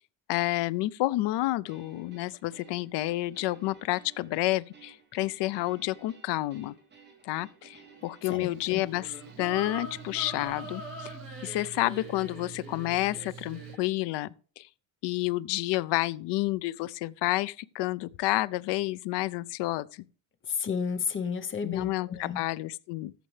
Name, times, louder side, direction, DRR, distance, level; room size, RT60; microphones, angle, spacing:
voice 1, 0.3-6.7 7.2-11.1 11.4-14.7 15.0-20.0 21.6-23.1, left 18 dB, 65° left, 0.5 m, -30 dB
sound 1, 1.7-10.5, right 5 dB, 20° right, 3.0 m, -55 dB
voice 2, 8.3-8.8 20.5-22.4, left 6 dB, 25° left, 0.8 m, -32 dB
Mechanical fan, 8.4-13.8, right 11 dB, 85° right, 0.8 m, -47 dB
sound 2, 8.6-13.9, equal, ahead, 4.0 m, -43 dB
14.5 x 6.6 x 3.2 m
cardioid pair, 170°, 46 cm